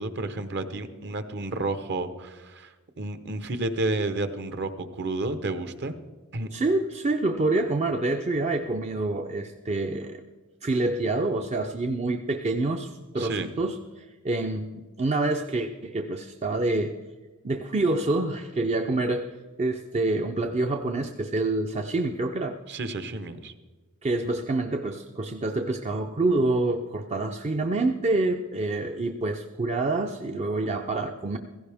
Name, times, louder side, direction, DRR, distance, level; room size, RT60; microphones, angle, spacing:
voice 1, 0.0-6.0 6.3-6.5 13.2-13.5 22.7-23.5, right 2 dB, 50° right, 10 dB, 0.9 m, -31 dB
voice 2, 6.5-10.2 10.6-17.0 17.4-22.6 24.0-31.4, right 2 dB, 30° right, 5 dB, 0.5 m, -27 dB
16.0 x 15.5 x 3.5 m, 1.3 s
head